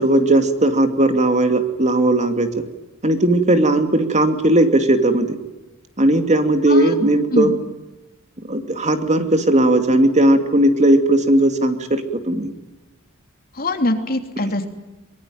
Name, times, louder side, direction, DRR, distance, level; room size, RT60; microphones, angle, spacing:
voice 1, 0.0-2.5 3.0-5.4 6.0-7.5 8.5-12.0 12.3-12.5, right 1 dB, 35° right, 7 dB, 2.6 m, -17 dB
voice 2, 13.5-14.7, left 1 dB, 45° left, 5 dB, 3.1 m, -22 dB
24.0 x 23.0 x 9.2 m, 1.0 s
head